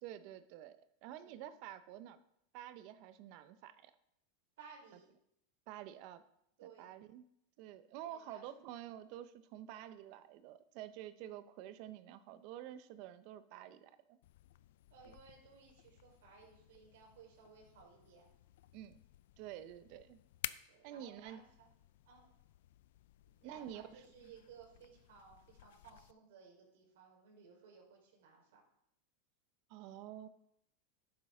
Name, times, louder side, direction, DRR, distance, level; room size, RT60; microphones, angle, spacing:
voice 1, 0.0-2.2 2.5-3.9 5.7-6.2 6.6-7.3 7.6-14.2 15.0-15.1 18.7-19.0 19.4-20.2 20.8-21.4 23.4-24.0 29.7-30.3, right 11 dB, 55° right, 12 dB, 0.9 m, -49 dB
voice 2, 1.1-1.5 4.6-5.1 6.6-6.9 8.0-8.4 14.9-18.3 20.7-21.7 22.1-22.3 23.2-28.6, right 6 dB, 75° right, 0 dB, 4.4 m, -59 dB
sound 1, 14.2-26.1, left 14 dB, 75° left, 0.4 m, -53 dB
11.5 x 9.6 x 3.8 m, 0.74 s
supercardioid pair, 130°, 0 cm